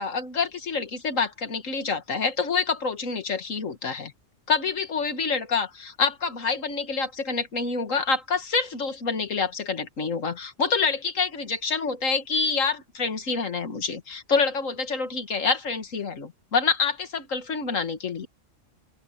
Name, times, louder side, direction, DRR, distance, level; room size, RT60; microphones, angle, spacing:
voice 1, 0.0-4.1 4.5-18.3, left 5 dB, 85° left, 2.2 m, -27 dB
open air
omnidirectional pair, 1.3 m